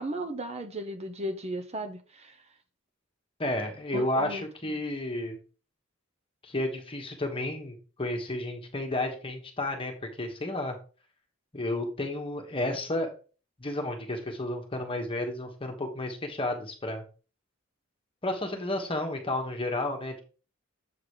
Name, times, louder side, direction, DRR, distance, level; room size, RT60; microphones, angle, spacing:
voice 1, 0.0-2.5 3.9-4.8, right 1 dB, 30° right, 0.8 m, -36 dB
voice 2, 3.4-5.4 6.4-9.9 10.2-10.7 11.5-13.1 13.6-17.0 18.2-20.2, left 1 dB, 25° left, 1.3 m, -32 dB
7.5 x 3.9 x 4.8 m
head